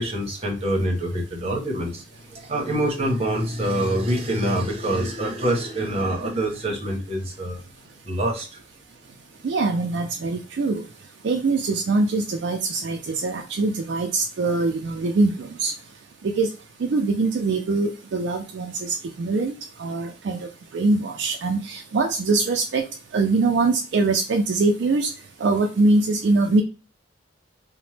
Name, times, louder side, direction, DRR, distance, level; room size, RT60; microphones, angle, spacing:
voice 1, 0.0-7.6 8.0-8.6, right 1 dB, 30° right, 0 dB, 0.8 m, -25 dB
voice 2, 9.4-10.8 11.2-15.7 16.2-16.5 16.8-19.5 19.8-20.5 20.7-22.8 23.1-25.1 25.4-26.6, right 3 dB, 60° right, 3 dB, 0.3 m, -23 dB
2.9 x 2.0 x 3.1 m, 0.33 s
head